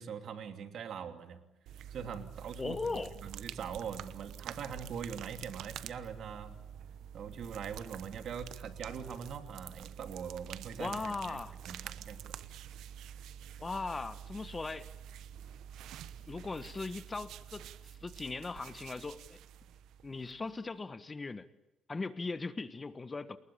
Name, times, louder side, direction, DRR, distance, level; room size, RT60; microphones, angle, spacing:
voice 1, 0.0-1.4 1.9-6.6 7.1-11.4 11.7-12.3, right 7 dB, 65° right, 7 dB, 2.8 m, -42 dB
sound 1, 1.7-20.6, right 9 dB, 85° right, 1.0 m, -48 dB
voice 2, 2.6-3.1 10.8-11.6 13.6-14.9 16.3-19.4 20.0-21.5 21.9-23.4, left 3 dB, 25° left, 13 dB, 1.4 m, -39 dB
29.5 x 20.0 x 8.8 m, 0.93 s
cardioid pair, 90°, 0 cm